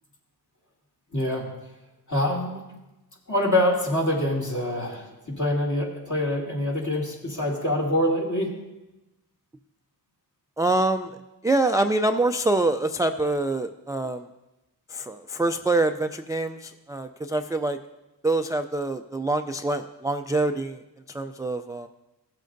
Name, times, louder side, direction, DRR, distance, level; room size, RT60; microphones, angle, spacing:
voice 1, 1.1-1.5 2.1-2.6 3.3-8.5, left 1 dB, 45° left, -2 dB, 2.5 m, -25 dB
voice 2, 10.6-11.2 11.4-14.3 14.9-17.8 18.2-20.8 21.1-21.9, right 2 dB, 10° right, 7 dB, 0.3 m, -25 dB
16.5 x 7.5 x 2.6 m, 1.0 s
cardioid pair, 65°, 41 cm